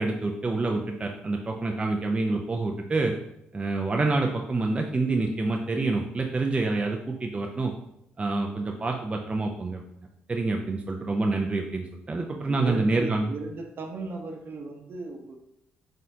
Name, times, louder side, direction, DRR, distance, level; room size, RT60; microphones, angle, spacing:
voice 1, 0.0-3.1 3.5-7.7 8.2-9.8 10.3-13.3, right 3 dB, 25° right, 1 dB, 0.5 m, -27 dB
voice 2, 12.4-15.4, right 3 dB, 55° right, 3 dB, 0.8 m, -36 dB
4.1 x 3.7 x 2.7 m, 0.79 s
supercardioid pair, 70°, 4 cm